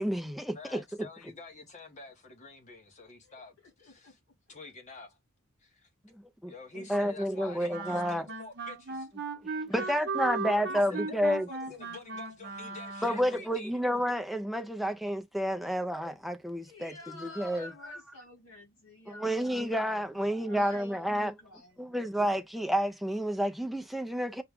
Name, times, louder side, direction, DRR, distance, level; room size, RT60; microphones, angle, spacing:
voice 1, 0.0-0.8 6.1-8.2 9.7-11.5 13.0-18.0 19.1-21.3 21.8-24.4, equal, ahead, 0.5 m, -30 dB
voice 2, 0.5-4.2 4.5-5.2 5.6-5.9 6.4-9.1 10.7-13.8, left 3 dB, 35° left, 1.1 m, -48 dB
voice 3, 3.2-4.1 9.7-10.1 10.4-10.6 15.6-15.9 16.6-19.8 20.2-22.0, left 2 dB, 75° left, 2.2 m, -51 dB
Wind instrument woodwind instrument, 7.7-13.4, right 4 dB, 55° right, 0.9 m, -37 dB
5.8 x 2.3 x 3.5 m
head